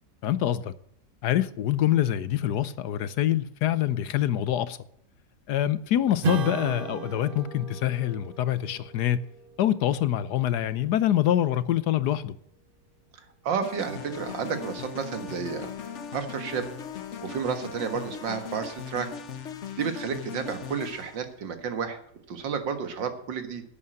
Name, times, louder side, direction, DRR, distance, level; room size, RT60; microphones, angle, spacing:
voice 1, 0.2-0.7 1.2-4.8 5.5-9.3 9.6-12.4, left 12 dB, 70° left, 1.2 m, -25 dB
Strum, 6.2-11.2, right 6 dB, 55° right, 0.6 m, -36 dB
voice 2, 13.4-16.7 17.2-19.1 19.8-22.0 22.3-23.6, right 6 dB, 85° right, 2.2 m, -31 dB
sound 1, 13.6-21.3, left 7 dB, 50° left, 1.1 m, -39 dB
11.0 x 8.5 x 7.7 m
omnidirectional pair, 2.0 m